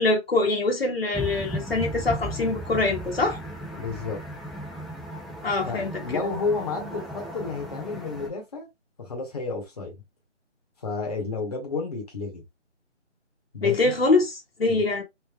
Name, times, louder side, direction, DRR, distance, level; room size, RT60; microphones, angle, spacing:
voice 1, 0.0-3.4 5.4-5.9 13.6-15.0, left 3 dB, 55° left, 1.0 m, -24 dB
sound 1, 1.1-8.3, equal, ahead, 0.3 m, -36 dB
voice 2, 3.7-4.2 5.6-8.7 9.0-10.0 10.8-12.4 13.5-13.9 14.7-14.8, left 4 dB, 35° left, 0.9 m, -31 dB
3.3 x 2.6 x 2.3 m
figure-of-eight pair, 165°, 36 cm